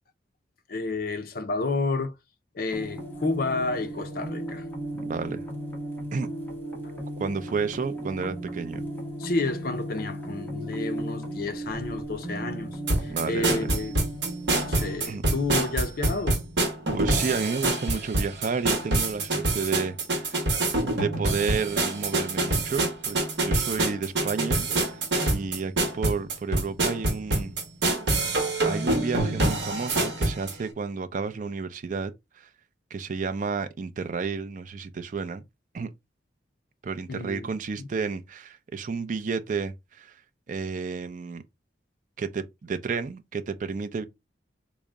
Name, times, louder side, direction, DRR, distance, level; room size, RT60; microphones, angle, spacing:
voice 1, 0.7-2.1 2.5-4.6 6.8-6.9 9.2-13.9 14.7-16.4 37.1-37.5 37.8-37.9, left 3 dB, 55° left, 0.5 m, -30 dB
sound 1, 2.7-15.0, right 1 dB, 10° left, 0.9 m, -36 dB
voice 2, 4.9-5.4 6.1-6.3 7.2-8.8 13.1-13.6 15.1-15.2 16.9-20.4 20.9-25.0 25.3-27.5 28.6-32.5 32.9-35.4 35.7-35.9 36.8-40.1 40.5-41.4 42.2-44.0, right 5 dB, 45° right, 0.4 m, -31 dB
sound 2, 12.9-30.5, right 2 dB, 80° right, 1.0 m, -26 dB
3.7 x 2.1 x 3.3 m
head